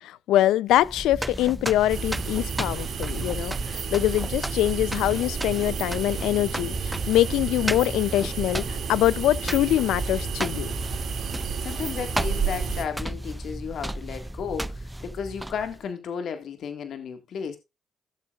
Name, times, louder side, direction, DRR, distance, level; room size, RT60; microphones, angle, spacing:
voice 1, 0.0-10.7, left 14 dB, 90° left, 0.5 m, -24 dB
sound 1, 0.7-15.8, right 1 dB, 10° right, 0.4 m, -34 dB
sound 2, 1.9-12.8, right 6 dB, 60° right, 2.4 m, -31 dB
voice 2, 11.3-17.6, left 7 dB, 65° left, 1.8 m, -34 dB
16.5 x 7.2 x 2.4 m
cardioid pair, 90°, 0 cm